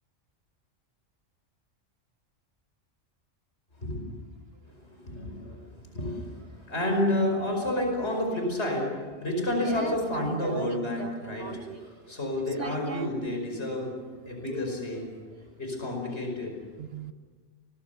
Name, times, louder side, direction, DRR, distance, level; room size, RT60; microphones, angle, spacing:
voice 1, 4.9-11.5 12.1-14.0 14.3-15.0 15.6-16.6, left 1 dB, 60° left, 2 dB, 5.6 m, -30 dB
voice 2, 9.5-13.3 14.5-14.6 15.3-15.4 16.4-17.1, right 3 dB, 55° right, 8 dB, 1.3 m, -39 dB
29.5 x 23.0 x 6.9 m, 1.5 s
omnidirectional pair, 1.3 m